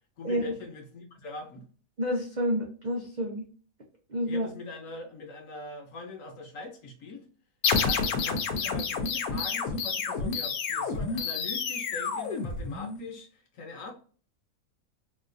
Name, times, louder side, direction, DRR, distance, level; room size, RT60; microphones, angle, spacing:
voice 1, 0.2-1.6 4.3-7.2 7.8-13.9, left 3 dB, 65° left, 2 dB, 1.2 m, -42 dB
voice 2, 2.0-3.4 4.1-4.5, equal, 75° right, 0 dB, 0.4 m, -29 dB
sound 1, 7.6-13.1, left 5 dB, 85° left, 1.1 m, -29 dB
3.7 x 2.4 x 2.5 m, 0.42 s
omnidirectional pair, 1.5 m